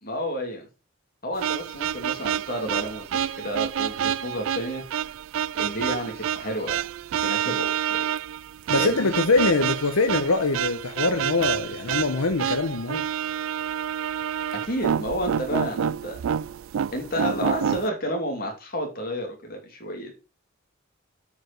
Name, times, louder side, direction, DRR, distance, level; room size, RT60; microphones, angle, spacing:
voice 1, 0.0-0.7 1.2-4.8 5.6-6.8 7.2-8.0 8.8-9.1 14.5-16.2 16.9-20.2, equal, 45° left, 2.7 m, -31 dB
sound 1, 1.4-17.9, right 9 dB, 70° right, 0.3 m, -28 dB
voice 2, 8.7-13.1, left 3 dB, 85° left, 1.0 m, -23 dB
8.3 x 5.2 x 5.0 m
head